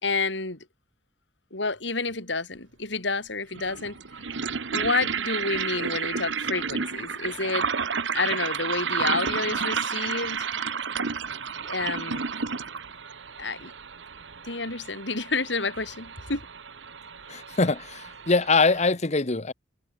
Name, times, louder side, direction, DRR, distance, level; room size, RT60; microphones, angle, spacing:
voice 1, 0.0-0.6 1.5-4.0 4.7-7.7 8.1-10.5 11.7-12.2 13.4-13.7 14.4-16.4, left 3 dB, 70° left, 4.8 m, -29 dB
sound 1, 2.6-2.7 3.5-18.9, right 6 dB, 75° right, 1.3 m, -31 dB
voice 2, 17.3-19.5, left 3 dB, 40° left, 1.1 m, -23 dB
head